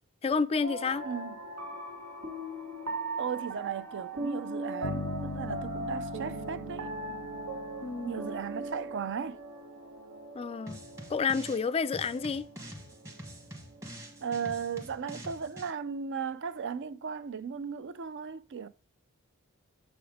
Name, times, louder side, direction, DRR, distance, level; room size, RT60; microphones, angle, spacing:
voice 1, 0.2-1.0 7.8-8.3 10.3-10.8 11.1-12.4, left 5 dB, 25° left, 0.3 m, -30 dB
sound 1, 0.6-14.9, right 2 dB, 80° right, 1.6 m, -39 dB
voice 2, 1.0-1.4 3.2-7.2 8.0-9.4 14.2-18.7, right 6 dB, 55° right, 0.5 m, -36 dB
sound 2, 4.8-8.6, left 4 dB, 90° left, 0.5 m, -40 dB
sound 3, 10.7-11.6 11.9-15.7, equal, 15° right, 1.2 m, -46 dB
7.0 x 5.2 x 3.5 m
head